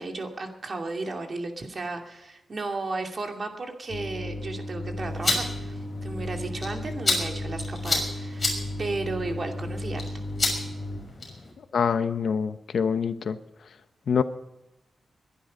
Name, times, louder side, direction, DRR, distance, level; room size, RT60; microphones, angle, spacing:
voice 1, 0.0-8.5 8.8-10.1, right 3 dB, 40° right, 3 dB, 2.6 m, -34 dB
sound 1, 3.9-11.0, left 1 dB, 50° left, 3.2 m, -35 dB
sound 2, 5.0-11.5, left 3 dB, 30° left, 6.0 m, -31 dB
voice 2, 11.7-13.4 14.1-14.2, left 6 dB, 70° left, 11 dB, 0.9 m, -25 dB
22.0 x 11.0 x 5.2 m, 0.95 s
wide cardioid pair, 125°, 0 cm